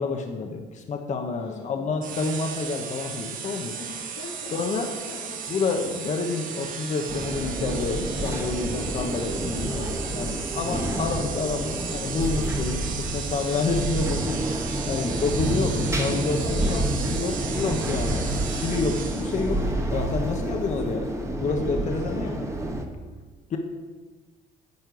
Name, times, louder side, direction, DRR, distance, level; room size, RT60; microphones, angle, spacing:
voice 1, 0.0-3.8 4.5-4.9 5.5-9.9 10.2-14.4 14.8-16.8 17.1-19.6 19.9-21.1 21.4-22.4 23.5-23.6, left 4 dB, 45° left, 3 dB, 1.1 m, -28 dB
voice 2, 1.4-1.9 3.5-4.5 5.1-5.5 9.6-10.2 15.0-15.2 15.6-15.8 16.4-18.4 20.6-21.0 22.0-22.6, left 5 dB, 80° left, 2 dB, 1.5 m, -41 dB
sound 1, 2.0-19.6, right 6 dB, 55° right, 1.1 m, -35 dB
sound 2, 7.1-22.9, right 1 dB, 15° right, 1.2 m, -29 dB
10.5 x 4.5 x 7.9 m, 1.3 s
cardioid pair, 110°, 17 cm